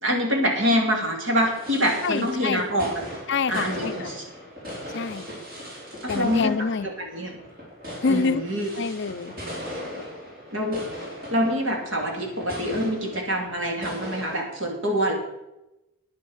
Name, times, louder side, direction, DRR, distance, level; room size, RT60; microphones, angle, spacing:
voice 1, 0.0-2.9 3.5-4.2 6.0-6.5 6.8-7.4 8.1-8.7 10.5-10.8 11.3-15.1, equal, 60° right, 3.0 m, -25 dB
sound 1, 1.4-14.4, equal, 45° right, 4.5 m, -38 dB
voice 2, 2.0-2.6 3.3-4.1 4.9-5.3 6.1-6.9 8.0-8.4 8.8-9.4 10.0-10.1, left 5 dB, 55° left, 0.5 m, -26 dB
10.0 x 9.1 x 6.4 m
head